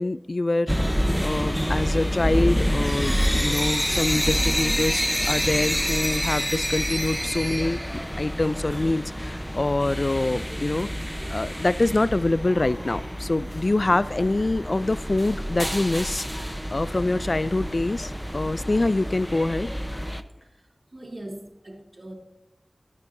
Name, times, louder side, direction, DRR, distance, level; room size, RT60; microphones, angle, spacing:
voice 1, 0.0-7.8 8.2-19.7, left 2 dB, 55° left, 16 dB, 0.3 m, -25 dB
sound 1, 0.7-20.2, equal, ahead, 0.8 m, -27 dB
voice 2, 20.9-22.1, right 1 dB, 50° right, -1 dB, 3.1 m, -40 dB
21.5 x 9.9 x 2.7 m, 0.88 s
wide cardioid pair, 60°, 0 cm